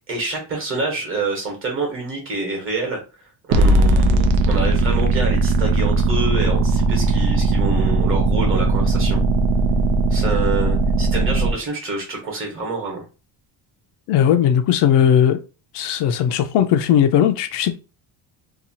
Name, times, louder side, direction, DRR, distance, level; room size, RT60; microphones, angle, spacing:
voice 1, 0.1-3.0 3.5-9.2 10.1-13.0, right 3 dB, 30° right, 1.1 m, -27 dB
sound 1, 3.5-11.5, right 2 dB, 75° right, 0.6 m, -18 dB
voice 2, 14.1-15.4 15.7-17.8, left 9 dB, 70° left, 0.5 m, -17 dB
2.8 x 2.3 x 2.7 m
cardioid pair, 170°, 44 cm